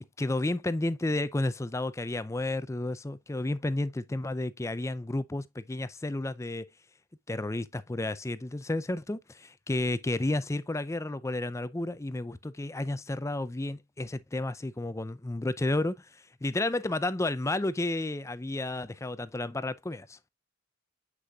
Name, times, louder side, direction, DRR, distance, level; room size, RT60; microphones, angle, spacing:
voice 1, 0.2-6.6 7.3-20.2, left 2 dB, 15° left, 0.5 m, -32 dB
7.6 x 6.5 x 2.3 m
head